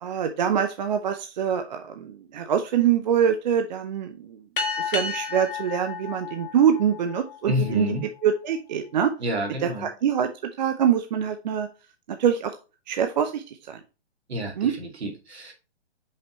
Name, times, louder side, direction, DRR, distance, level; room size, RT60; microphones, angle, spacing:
voice 1, 0.0-4.4 4.8-7.9 8.2-9.1 9.8-10.3 10.6-11.7 12.2-12.5 12.9-13.8 14.6-14.7, right 8 dB, 40° right, 7 dB, 0.6 m, -24 dB
sound 1, 4.6-7.5, left 5 dB, 50° left, 1.4 m, -31 dB
voice 2, 7.5-8.0 9.2-9.9 14.3-15.5, left 1 dB, 70° right, 2 dB, 2.4 m, -29 dB
5.8 x 5.6 x 3.1 m, 0.31 s
hypercardioid pair, 150°, 33 cm